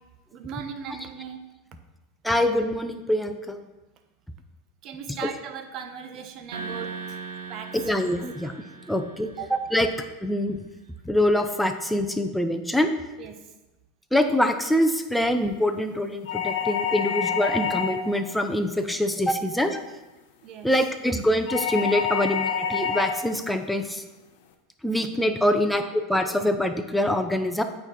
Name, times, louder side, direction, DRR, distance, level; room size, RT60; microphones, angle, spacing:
voice 1, 0.3-1.4 4.8-7.2 7.5-7.7 9.4-9.5 13.2-13.3 19.3-19.4 20.4-20.7 24.9-25.3, right 8 dB, 50° right, 7 dB, 0.9 m, -38 dB
voice 2, 2.2-3.6 5.2-5.3 7.7-8.5 8.9-9.9 10.2-10.6 11.0-12.9 14.1-19.8 20.6-24.0 24.8-27.6, left 1 dB, 5° left, 6 dB, 0.7 m, -24 dB
sound 1, 6.5-10.0, right 4 dB, 80° right, 0.8 m, -39 dB
Phone ringing (distance), 16.3-18.2 21.5-23.3, left 7 dB, 70° left, 0.8 m, -27 dB
8.8 x 4.2 x 4.4 m, 1.1 s
hypercardioid pair, 95°, 0 cm